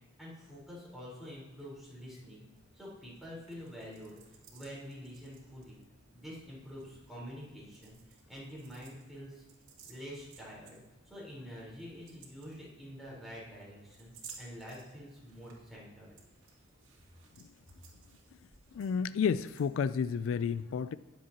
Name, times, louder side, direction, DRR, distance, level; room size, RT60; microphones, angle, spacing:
voice 1, 0.2-2.4 2.7-5.8 6.1-9.4 9.8-16.1, equal, ahead, -7 dB, 4.0 m, -47 dB
sound 1, 2.5-20.2, right 5 dB, 70° right, 2.4 m, -59 dB
voice 2, 18.7-21.0, left 6 dB, 80° left, 16 dB, 0.3 m, -31 dB
19.0 x 7.5 x 2.9 m, 1.1 s
head